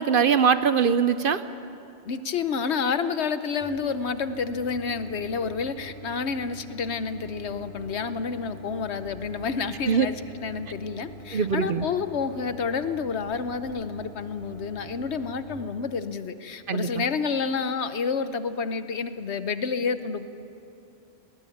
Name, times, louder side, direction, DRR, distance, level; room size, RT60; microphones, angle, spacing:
voice 1, 0.0-1.4 9.9-10.1 11.3-11.8 16.7-17.0, right 6 dB, 55° right, 12 dB, 0.8 m, -22 dB
voice 2, 2.0-20.3, left 5 dB, 70° left, 11 dB, 1.2 m, -29 dB
sound 1, 3.6-15.5, equal, 10° left, 6.4 m, -45 dB
20.0 x 19.0 x 9.4 m, 2.7 s
omnidirectional pair, 1.2 m